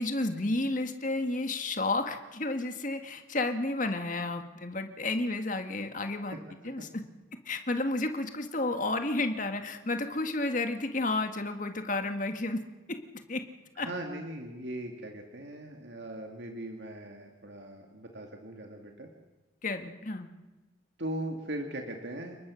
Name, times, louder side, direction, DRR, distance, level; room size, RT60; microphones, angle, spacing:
voice 1, 0.0-6.4 6.6-7.0 7.4-12.6 12.9-13.0 13.3-13.4 13.8-13.9 19.6-20.3, left 2 dB, 45° left, 6 dB, 1.8 m, -31 dB
voice 2, 13.8-19.1 21.0-22.4, right 1 dB, 70° right, 2 dB, 2.3 m, -39 dB
30.0 x 19.5 x 6.4 m, 1.2 s
head